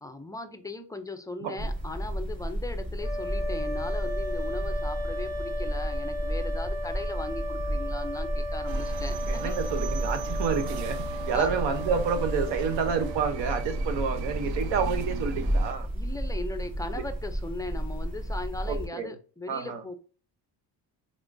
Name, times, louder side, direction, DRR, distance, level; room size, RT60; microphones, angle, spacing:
voice 1, 0.0-9.5 11.1-11.5 15.9-19.9, left 2 dB, 10° left, 0.4 m, -38 dB
sound 1, 1.6-18.9, right 1 dB, 25° right, 2.0 m, -32 dB
sound 2, 3.0-13.9, left 1 dB, 10° right, 1.4 m, -36 dB
sound 3, 8.7-15.7, right 9 dB, 60° right, 0.5 m, -40 dB
voice 2, 9.3-11.0 11.3-15.9 18.7-19.1 19.5-19.8, right 6 dB, 75° right, 0.8 m, -29 dB
3.7 x 3.6 x 2.5 m
cardioid pair, 110°, 44 cm